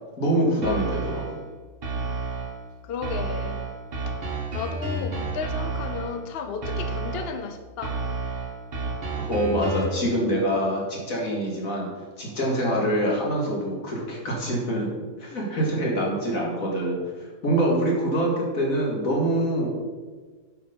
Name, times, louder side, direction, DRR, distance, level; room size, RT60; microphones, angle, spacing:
voice 1, 0.2-1.4 9.2-11.9 12.2-14.9 15.2-19.7, right 1 dB, 75° left, -3 dB, 2.7 m, -25 dB
sound 1, 0.6-1.4 1.8-2.6 3.0-6.2 6.6-7.4 7.8-10.0, right 3 dB, 45° right, 1.4 m, -31 dB
voice 2, 2.8-3.6 4.1-4.2 4.5-8.0, left 5 dB, 55° left, 7 dB, 0.8 m, -33 dB
8.7 x 6.4 x 5.3 m, 1.4 s
omnidirectional pair, 1.5 m